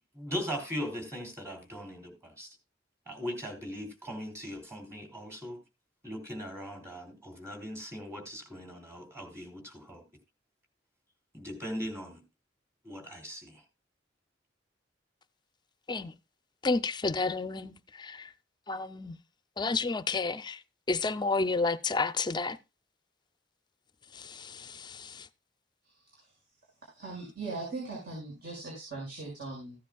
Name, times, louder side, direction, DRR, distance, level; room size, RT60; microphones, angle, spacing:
voice 1, 0.1-2.5 3.1-5.6 6.0-10.0 11.3-12.2 12.8-13.6, equal, 15° right, 3.1 m, -39 dB
voice 2, 16.6-18.2 18.7-19.1 19.6-20.6 20.9-22.6, left 3 dB, 25° left, 0.5 m, -30 dB
voice 3, 26.9-29.7, right 3 dB, 60° right, 5.5 m, -39 dB
15.0 x 10.0 x 2.3 m
head